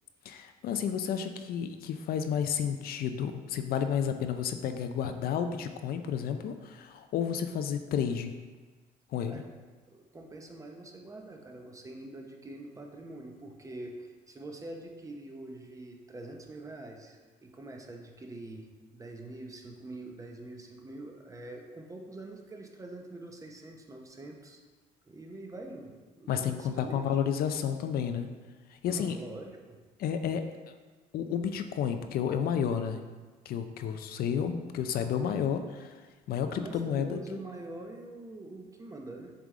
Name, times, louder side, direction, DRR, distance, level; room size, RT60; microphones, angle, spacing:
voice 1, 0.2-8.3 9.1-9.3 26.3-28.3 28.7-29.2 30.0-30.4 31.1-33.0 33.5-36.0 36.3-37.2, left 8 dB, 65° left, 7 dB, 0.5 m, -31 dB
voice 2, 9.9-24.6 25.1-27.1 28.9-29.8 36.5-39.3, right 2 dB, 20° right, 2 dB, 0.8 m, -45 dB
7.4 x 3.5 x 3.6 m, 1.3 s
cardioid pair, 110°, 17 cm